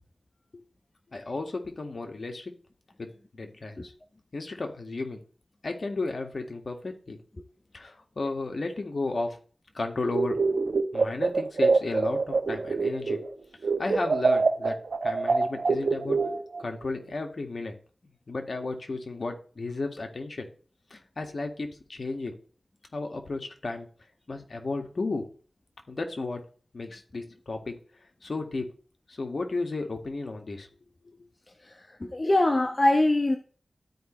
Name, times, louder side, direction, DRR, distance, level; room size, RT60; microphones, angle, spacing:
voice 1, 1.1-2.5 3.0-3.9 4.3-5.2 5.6-7.2 7.7-9.4 9.7-10.4 10.9-13.2 13.8-14.8 15.0-16.2 16.6-17.7 18.3-20.5 20.9-22.3 22.9-23.9 24.3-25.2 25.9-26.4 26.7-27.8 28.2-28.7 29.1-30.7, left 3 dB, 60° left, 1.8 m, -33 dB
sound 1, 10.1-13.3 13.6-16.7, right 4 dB, 70° right, 1.0 m, -25 dB
voice 2, 31.7-33.4, left 1 dB, 35° left, 1.0 m, -23 dB
13.0 x 4.9 x 3.2 m
wide cardioid pair, 60°, 0 cm